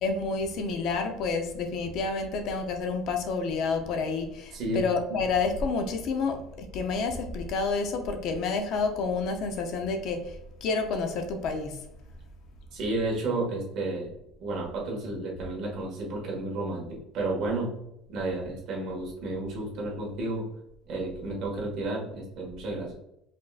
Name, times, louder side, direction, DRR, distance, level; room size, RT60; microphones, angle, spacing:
voice 1, 0.0-10.3 10.6-11.8, left 4 dB, 50° left, 6 dB, 0.6 m, -29 dB
voice 2, 4.5-4.8 5.1-5.2 12.7-14.1 14.4-17.8 18.1-20.5 20.9-22.9, right 2 dB, 45° right, -2 dB, 1.5 m, -32 dB
5.0 x 3.5 x 2.4 m, 0.81 s
cardioid pair, 170°, 0 cm